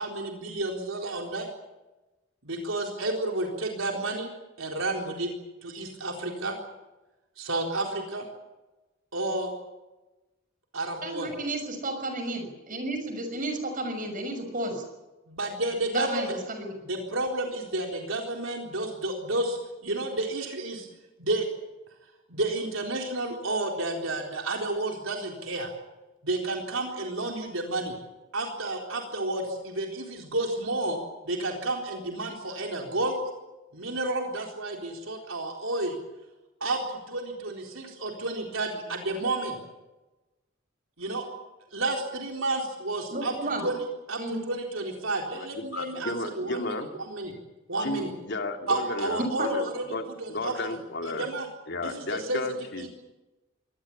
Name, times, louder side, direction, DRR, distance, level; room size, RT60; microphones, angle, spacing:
voice 1, 0.0-1.5 2.4-4.3 4.6-5.3 5.6-6.5 7.4-8.3 9.1-9.5 10.7-11.3 15.3-16.3 16.9-20.9 21.2-21.5 22.3-25.7 26.2-27.9 28.3-31.0 31.3-33.1 33.7-36.0 36.6-39.6 41.0-41.2 41.7-43.3 43.6-43.8 44.1-47.4 47.7-48.1 48.7-49.8 50.2-51.5 51.8-52.4 52.8-52.9, right 2 dB, 75° right, 1 dB, 4.0 m, -31 dB
voice 2, 11.0-14.8 15.9-16.7 43.1-43.7 44.2-44.5 49.4-49.5, right 2 dB, 40° right, 7 dB, 6.3 m, -32 dB
voice 3, 45.3-46.9 47.8-49.6 49.9-51.3 51.7-52.9, left 2 dB, 55° left, 5 dB, 2.7 m, -33 dB
24.0 x 18.5 x 8.6 m, 1.1 s
head